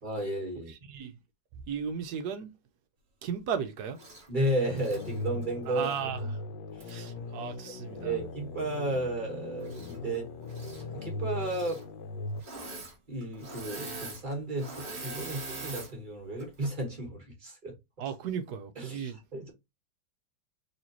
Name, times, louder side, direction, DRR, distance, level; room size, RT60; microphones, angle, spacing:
voice 1, 0.0-0.7 4.3-5.9 6.2-6.3 6.8-7.0 7.9-10.3 10.7-11.8 13.1-17.7 18.8-19.5, right 1 dB, 25° right, 1.5 m, -33 dB
voice 2, 0.7-1.1 1.7-2.5 3.2-4.0 5.7-6.4 6.9-8.2 18.0-19.2, right 7 dB, 70° right, 1.1 m, -35 dB
Engine / Mechanisms, 3.9-4.3 4.7-6.0 6.8-6.9 9.6-10.2 10.4-10.8 11.4-11.8 12.4-13.0 13.2-15.9 16.4-16.7, right 3 dB, 45° right, 1.6 m, -43 dB
sound 1, 4.9-12.4, left 2 dB, 75° left, 1.3 m, -39 dB
4.2 x 3.2 x 2.9 m
omnidirectional pair, 2.0 m